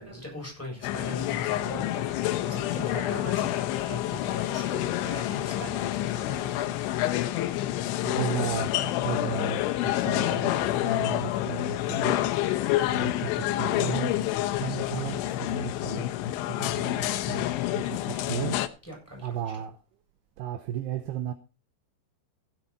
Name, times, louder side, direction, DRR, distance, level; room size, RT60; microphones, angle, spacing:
voice 1, 0.0-2.1 2.4-6.5 18.9-19.3, equal, 5° left, 7.6 m, -40 dB
sound 1, 0.8-18.7, left 14 dB, 90° left, 3.2 m, -28 dB
voice 2, 8.0-12.2 12.9-14.2 14.5-18.7 19.2-19.8 20.4-21.3, right 10 dB, 75° right, 2.6 m, -35 dB
16.0 x 8.4 x 4.2 m
omnidirectional pair, 5.4 m